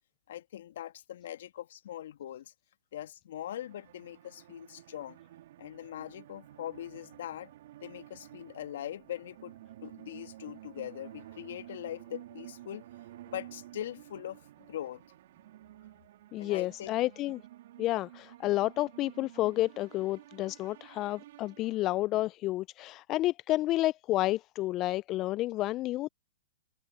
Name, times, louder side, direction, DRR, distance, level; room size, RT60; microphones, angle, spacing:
voice 1, 0.3-2.5 2.9-5.2 5.6-7.5 7.8-9.5 9.8-12.8 13.3-15.0 16.4-17.0, left 11 dB, 65° left, 2.2 m, -41 dB
sound 1, 3.4-22.1, right 14 dB, 60° right, 2.4 m, -52 dB
voice 2, 16.3-17.4 17.8-26.1, left 16 dB, 35° left, 0.3 m, -30 dB
hypercardioid pair, 115°, 0 cm